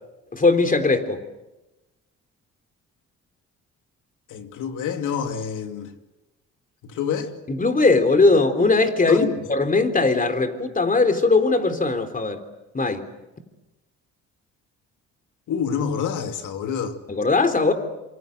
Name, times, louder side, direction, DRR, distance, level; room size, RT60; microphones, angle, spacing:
voice 1, 0.3-1.2 7.5-12.4 12.7-13.1 17.1-17.7, left 3 dB, 25° left, 3.8 m, -19 dB
voice 2, 4.3-5.9 6.8-7.3 9.1-9.4 15.5-17.0, left 7 dB, 80° left, 2.7 m, -27 dB
27.0 x 25.5 x 8.0 m
cardioid pair, 90°, 30 cm